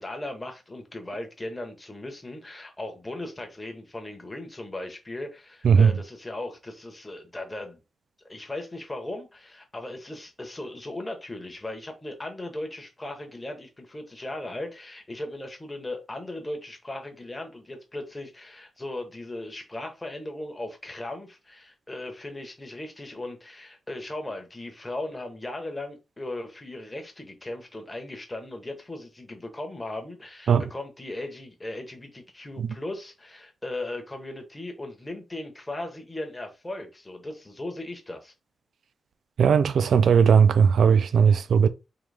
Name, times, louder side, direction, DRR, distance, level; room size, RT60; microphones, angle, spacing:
voice 1, 0.0-7.8 8.2-38.3, left 1 dB, 15° left, 0.8 m, -37 dB
voice 2, 39.4-41.7, right 6 dB, 65° right, 0.3 m, -18 dB
3.8 x 2.9 x 3.3 m
wide cardioid pair, 175°, 0 cm